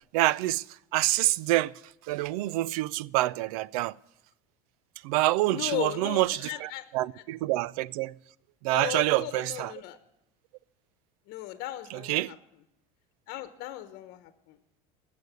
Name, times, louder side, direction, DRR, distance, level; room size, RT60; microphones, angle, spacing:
voice 1, 0.1-0.6 0.9-1.7 2.1-3.9 5.0-8.1 8.6-9.7 11.9-12.3, right 17 dB, 90° right, 0.4 m, -27 dB
voice 2, 5.5-6.9 8.7-10.0 11.3-12.3 13.3-14.6, left 15 dB, 55° left, 1.1 m, -37 dB
16.0 x 6.8 x 9.4 m
cardioid pair, 155°, 18 cm